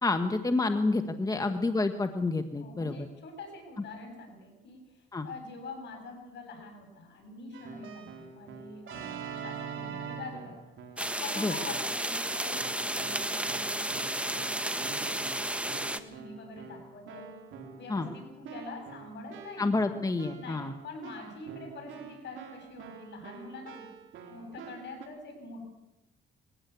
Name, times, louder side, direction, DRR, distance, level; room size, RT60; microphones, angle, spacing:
voice 1, 0.0-2.9 5.1-5.3 11.4-11.5 17.9-18.1 19.6-20.7, left 3 dB, 20° left, 8 dB, 1.2 m, -28 dB
voice 2, 1.3-1.6 2.6-10.7 11.2-15.5 15.8-17.3 17.7-19.7 20.4-23.9 24.3-25.6, left 3 dB, 65° left, 4 dB, 7.9 m, -45 dB
Keyboard (musical), 7.5-11.2 11.6-12.1 12.5-25.1, right 6 dB, 75° right, 3.8 m, -45 dB
sound 1, 11.0-16.0, right 1 dB, 5° right, 1.3 m, -32 dB
21.0 x 16.5 x 8.4 m, 0.97 s
cardioid pair, 90°, 20 cm